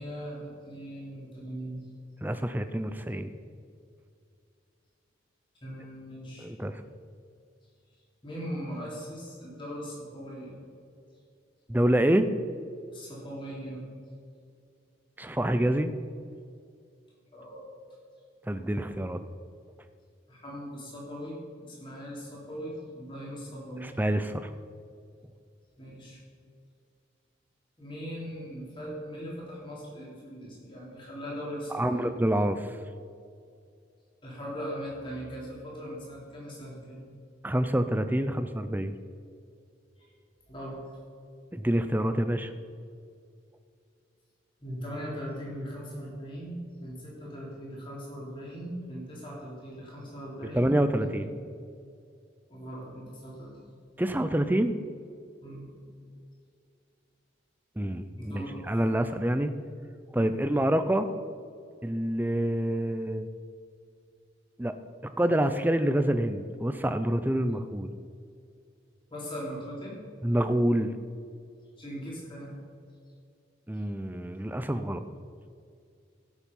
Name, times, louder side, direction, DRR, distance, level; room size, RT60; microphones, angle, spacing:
voice 1, 0.0-1.8 5.6-6.5 8.2-10.6 12.9-13.8 17.3-17.7 20.3-23.9 25.8-26.2 27.8-32.2 34.2-37.0 40.0-40.1 40.5-40.8 44.6-50.7 51.0-51.2 52.5-53.7 55.4-55.8 58.2-58.6 60.1-60.4 69.1-69.9 71.8-72.5, equal, 25° left, -5 dB, 3.5 m, -40 dB
voice 2, 2.2-3.3 6.4-6.8 11.7-12.3 15.2-15.9 18.5-19.2 23.8-24.5 31.7-32.8 37.4-38.9 41.5-42.5 50.5-51.3 54.0-54.7 57.8-59.5 60.1-61.1 61.8-63.3 64.6-64.8 65.2-67.9 70.2-71.0 73.7-75.0, right 1 dB, 10° right, 10 dB, 0.5 m, -27 dB
16.0 x 7.3 x 5.4 m, 2.3 s
head